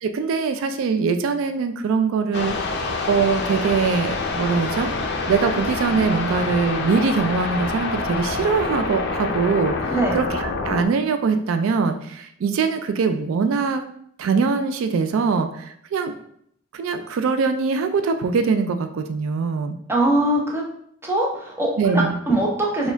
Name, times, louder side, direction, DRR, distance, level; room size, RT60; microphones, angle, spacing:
voice 1, 0.0-4.9 5.3-13.8 14.2-16.1 16.7-19.8 21.8-22.2, right 5 dB, 80° right, 8 dB, 0.3 m, -22 dB
sound 1, 2.3-10.9, left 3 dB, 55° left, 0.5 m, -26 dB
voice 2, 19.9-20.6 21.0-22.9, right 1 dB, 10° right, -2 dB, 0.6 m, -22 dB
4.3 x 2.3 x 3.4 m, 0.70 s
head